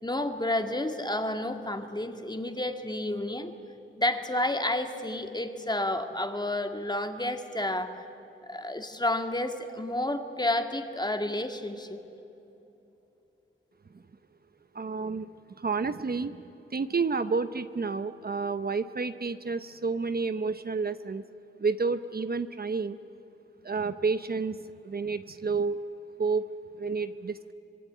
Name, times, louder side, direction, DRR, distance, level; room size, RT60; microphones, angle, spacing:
voice 1, 0.0-3.5 4.0-8.0 8.4-12.0, left 1 dB, 20° left, 6 dB, 2.0 m, -30 dB
voice 2, 14.7-15.3 15.6-16.4 16.7-21.2 21.6-23.0 23.6-25.8 26.2-26.5 26.8-27.5, right 4 dB, 45° right, 11 dB, 0.8 m, -30 dB
25.0 x 22.5 x 9.2 m, 3.0 s
wide cardioid pair, 80°, 21 cm